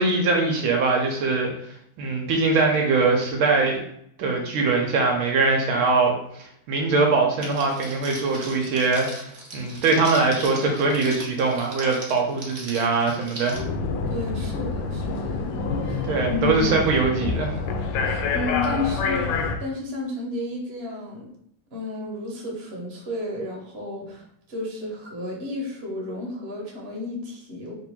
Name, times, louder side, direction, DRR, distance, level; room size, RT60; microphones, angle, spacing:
voice 1, 0.0-1.5 2.0-3.8 4.2-13.6 16.1-17.6, right 3 dB, 75° right, 1 dB, 1.5 m, -22 dB
Crackle, 7.4-13.6, right 2 dB, 55° right, 0.7 m, -39 dB
sound 1, 13.5-19.6, left 4 dB, 85° left, 1.5 m, -27 dB
voice 2, 14.1-16.7 18.0-21.3 21.7-24.2 24.5-27.7, left 2 dB, 40° right, -2 dB, 1.0 m, -32 dB
3.7 x 2.6 x 4.4 m, 0.72 s
omnidirectional pair, 2.4 m